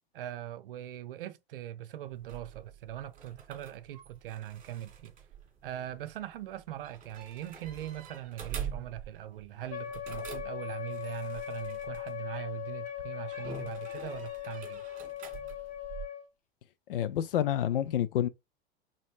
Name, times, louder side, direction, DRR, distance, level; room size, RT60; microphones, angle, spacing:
voice 1, 0.1-5.1 5.6-14.8, right 12 dB, 55° right, 0.7 m, -41 dB
sound 1, 2.1-12.6 13.3-16.0, right 7 dB, 25° right, 2.0 m, -45 dB
Wind instrument woodwind instrument, 9.7-16.3, left 12 dB, 25° left, 0.9 m, -39 dB
voice 2, 16.9-18.3, left 11 dB, 55° left, 0.6 m, -28 dB
4.1 x 3.7 x 3.3 m
figure-of-eight pair, 90°, 33 cm